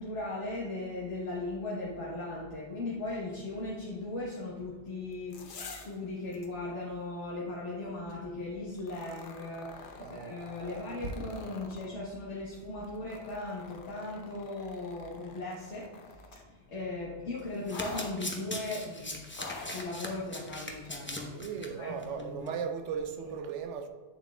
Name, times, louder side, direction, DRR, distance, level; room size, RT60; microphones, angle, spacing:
voice 1, 0.0-22.5 23.3-23.4, left 2 dB, 75° left, 1.5 m, -38 dB
sound 1, 5.1-6.0 6.3-6.5 8.8-11.9 12.8-16.5 17.7-18.1 19.3-19.9 20.8-20.9, left 4 dB, 50° left, 0.8 m, -46 dB
voice 2, 10.0-10.4 10.7-11.1 21.3-23.9, right 6 dB, 85° right, 1.0 m, -37 dB
Domestic sounds home sounds, 17.5-21.7 22.0-22.2 22.5-22.6, left 1 dB, 10° left, 0.7 m, -40 dB
8.2 x 7.3 x 2.3 m
omnidirectional pair, 1.2 m